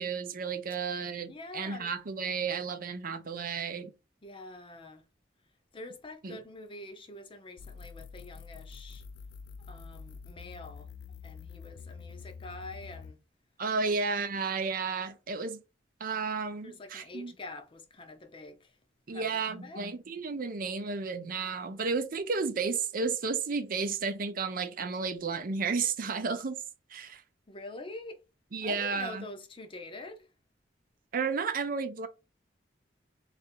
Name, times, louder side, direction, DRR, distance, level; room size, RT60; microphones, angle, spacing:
voice 1, 0.0-3.9 6.2-6.4 13.6-15.6 16.0-17.3 19.1-26.6 26.9-27.2 28.5-29.2 31.1-32.1, right 5 dB, 50° right, 0.5 m, -32 dB
voice 2, 1.3-1.9 4.2-5.0 5.7-9.0 9.7-10.9 11.2-13.2 13.8-13.9 16.6-18.7 19.1-19.9 27.5-28.2 28.6-30.3, left 2 dB, 30° left, 0.7 m, -45 dB
sound 1, 7.6-13.1, left 5 dB, 70° left, 0.4 m, -46 dB
3.6 x 2.5 x 4.3 m
head